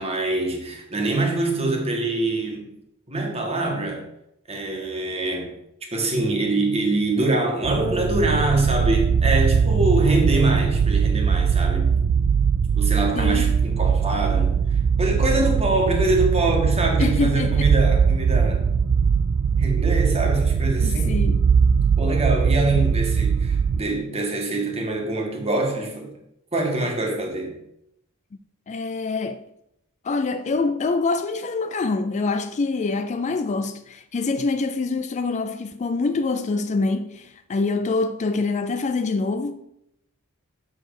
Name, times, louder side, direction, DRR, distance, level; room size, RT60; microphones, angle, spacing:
voice 1, 0.0-2.7 3.1-4.0 4.5-5.6 5.9-12.1 12.8-14.6 15.0-18.6 19.6-21.3 22.0-26.1 26.5-27.6, right 2 dB, 30° right, 1.6 m, -24 dB
sound 1, 7.6-23.8, right 6 dB, 75° right, 0.4 m, -20 dB
voice 2, 13.2-13.5 17.0-17.7 20.8-21.5 28.7-29.4 30.0-39.6, left 3 dB, 35° left, 0.4 m, -25 dB
6.8 x 6.3 x 4.8 m
head